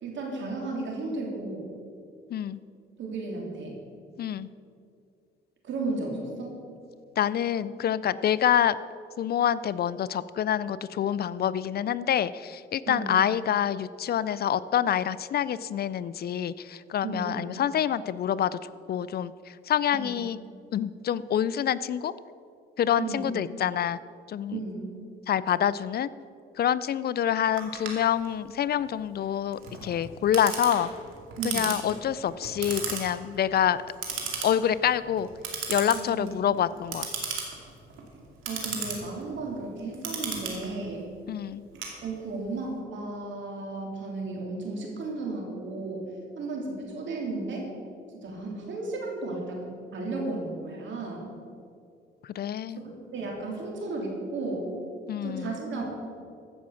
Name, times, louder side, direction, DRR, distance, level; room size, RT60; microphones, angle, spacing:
voice 1, 0.0-1.6 3.0-3.8 5.7-6.6 12.9-13.2 17.0-17.4 19.9-20.1 23.0-23.3 24.5-24.9 31.4-31.8 35.9-36.6 38.5-41.1 42.0-46.1 46.4-47.7 48.1-49.7 49.9-51.3 52.7-54.7 55.2-55.8, right 3 dB, 70° right, 0 dB, 3.3 m, -34 dB
voice 2, 4.2-4.5 7.2-8.8 9.2-18.6 18.9-20.4 20.7-22.1 22.8-24.0 24.3-24.6 25.3-26.1 26.6-30.9 31.4-33.8 34.4-35.3 35.7-37.1 41.3-41.6 52.2-52.8 55.1-55.6, left 9 dB, 50° left, 17 dB, 0.4 m, -27 dB
Clock, 27.6-42.5, right 5 dB, 85° right, 2.5 m, -36 dB
15.0 x 6.3 x 7.1 m, 2.4 s
cardioid pair, 90°, 20 cm